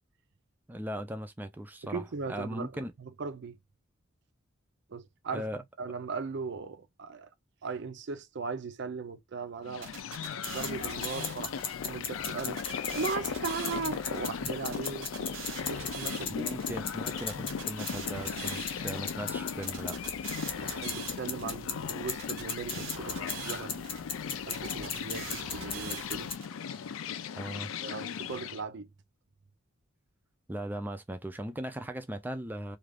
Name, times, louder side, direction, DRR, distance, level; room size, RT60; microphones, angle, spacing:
voice 1, 0.7-2.0 2.3-2.9 5.3-5.6 16.3-20.0 20.6-20.9 27.4-27.7 30.5-32.8, right 1 dB, 10° right, 0.4 m, -38 dB
voice 2, 1.8-3.6 4.9-5.5 5.8-7.3 7.6-9.9 10.5-11.6 11.8-12.6 13.0-15.4 15.7-16.5 20.8-23.9 24.4-26.3 27.7-28.9, right 4 dB, 60° right, 0.5 m, -38 dB
sound 1, 9.7-28.6, left 7 dB, 75° left, 0.4 m, -38 dB
sound 2, 9.8-11.7 12.3-14.2 14.7-16.6 17.2-19.1 19.6-21.6 22.1-24.0 24.5-26.5, right 6 dB, 80° right, 1.0 m, -43 dB
sound 3, 10.4-26.4, left 5 dB, 25° left, 0.6 m, -39 dB
2.4 x 2.4 x 3.2 m
head